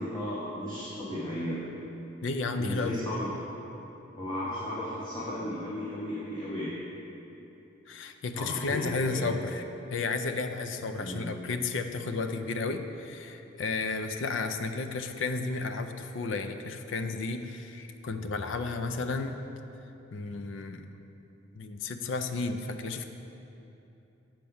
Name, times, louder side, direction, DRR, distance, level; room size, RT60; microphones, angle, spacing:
voice 1, 0.0-1.6 2.6-3.3 4.2-6.7 8.3-9.2 11.0-11.2, equal, 25° left, -8 dB, 1.1 m, -35 dB
voice 2, 2.2-3.0 7.9-9.6 9.9-19.4 20.1-20.9 21.5-23.1, left 3 dB, 75° left, 8 dB, 0.5 m, -32 dB
7.4 x 4.5 x 7.0 m, 2.9 s
head